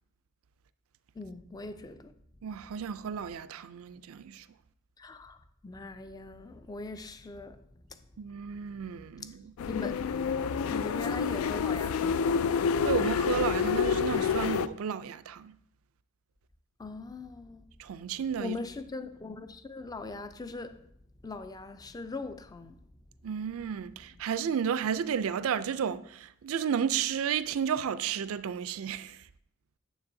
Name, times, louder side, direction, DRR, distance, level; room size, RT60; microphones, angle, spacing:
voice 1, 1.2-2.1 5.0-5.4 5.6-7.6 7.9-8.0 9.7-10.0 10.7-12.4 16.8-17.6 18.4-20.8 21.2-22.8, left 3 dB, 20° left, 0.4 m, -40 dB
voice 2, 2.4-4.5 8.2-9.5 12.8-15.5 17.8-18.6 23.2-29.2, right 7 dB, 80° right, 0.4 m, -32 dB
sound 1, 9.6-14.7, left 6 dB, 85° left, 0.3 m, -28 dB
9.5 x 7.4 x 2.7 m
head